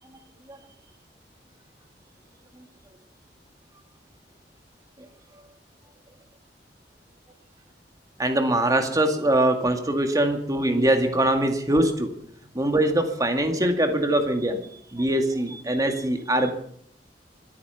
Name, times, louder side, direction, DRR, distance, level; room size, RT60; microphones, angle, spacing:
voice 1, 8.2-12.1 12.5-14.6 14.9-16.5, right 1 dB, 20° right, 5 dB, 2.2 m, -22 dB
25.5 x 8.8 x 5.8 m, 0.62 s
head